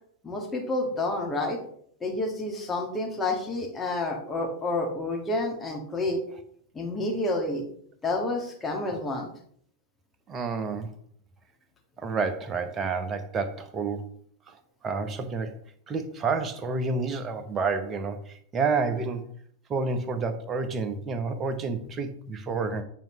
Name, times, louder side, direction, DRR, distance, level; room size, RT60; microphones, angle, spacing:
voice 1, 0.2-1.6 2.0-6.2 6.7-7.6 8.0-9.3, left 2 dB, 15° left, 1 dB, 1.8 m, -29 dB
voice 2, 10.3-10.9 12.0-14.1 14.5-14.6 14.8-15.5 15.9-19.2 19.7-22.8, right 4 dB, 25° right, 9 dB, 0.9 m, -29 dB
9.0 x 5.2 x 3.0 m, 0.62 s
figure-of-eight pair, 90°, 0 cm